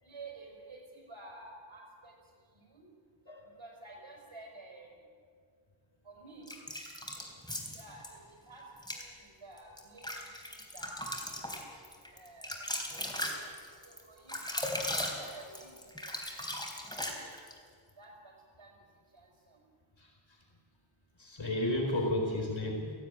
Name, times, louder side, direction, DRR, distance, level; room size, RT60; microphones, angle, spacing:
voice 1, 0.0-2.2 2.5-2.8 3.4-4.9 6.0-6.6 7.2-8.6 8.9-10.9 11.3-11.8 12.1-13.6 13.8-14.4 15.0-17.3 18.0-18.3 18.6-18.8 19.1-19.6, right 2 dB, 85° right, 0 dB, 5.7 m, -52 dB
sound 1, 6.5-8.1 8.8-9.0 9.6-17.6, left 1 dB, 10° left, 3.7 m, -38 dB
voice 2, 21.2-22.9, left 1 dB, 80° left, 0 dB, 4.4 m, -32 dB
17.5 x 16.0 x 9.4 m, 2.1 s
wide cardioid pair, 70°, 46 cm